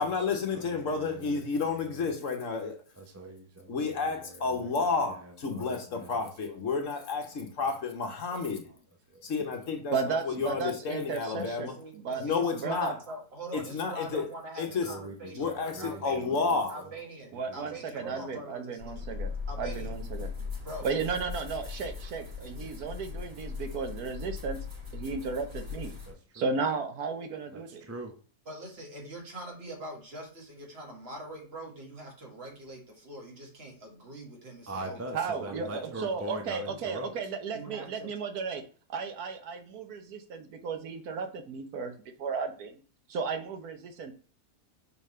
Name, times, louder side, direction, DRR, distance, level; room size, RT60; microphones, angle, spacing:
voice 1, 0.0-2.8 3.7-8.7 9.2-11.8 12.2-13.0 13.5-14.3 14.6-14.9 15.3-16.7, left 4 dB, 60° left, 1.3 m, -31 dB
voice 2, 0.5-2.1 3.0-4.7 5.1-6.7 7.3-7.5 8.3-8.4 9.1-9.3 10.4-10.6 14.8-16.4 16.8-16.9 17.3-18.2 26.1-26.5 27.5-28.1 34.7-37.3, right 1 dB, 20° right, 0.4 m, -43 dB
voice 3, 9.9-12.2 12.5-12.9 17.3-19.3 19.6-20.3 20.8-24.6 24.9-25.9 26.3-27.8 35.1-38.6 38.9-41.9 42.2-42.8 43.1-44.1, right 5 dB, 80° right, 1.4 m, -34 dB
voice 4, 11.6-16.4 16.7-20.0 20.4-21.2 28.5-36.1 36.7-36.8 37.5-38.1, right 1 dB, 40° right, 2.0 m, -44 dB
sound 1, 18.8-26.1, left 5 dB, 60° right, 4.0 m, -39 dB
5.6 x 5.2 x 3.2 m
omnidirectional pair, 1.6 m